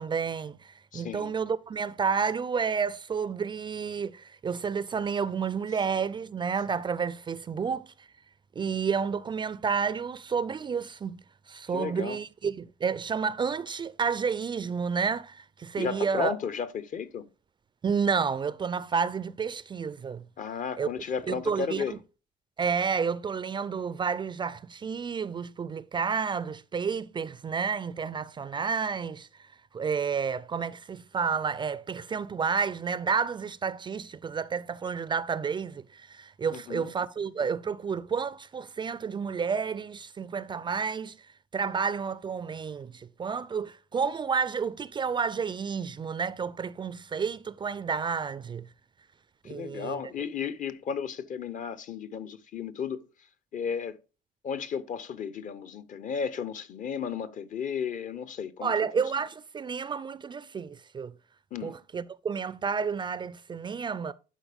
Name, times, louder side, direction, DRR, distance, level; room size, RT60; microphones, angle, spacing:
voice 1, 0.0-8.1 8.6-11.2 11.5-16.3 17.8-20.2 20.8-20.9 21.3-21.8 22.6-29.3 29.7-41.1 41.5-48.7 49.4-50.0 58.6-61.1 61.6-64.1, right 6 dB, 25° right, 0.4 m, -30 dB
voice 2, 0.9-1.4 11.7-12.2 15.8-17.3 20.4-22.0 36.5-36.9 49.4-53.1 53.5-54.0 54.4-58.7 61.5-61.8, left 6 dB, 50° left, 0.8 m, -34 dB
11.0 x 4.2 x 3.4 m
cardioid pair, 110°, 17 cm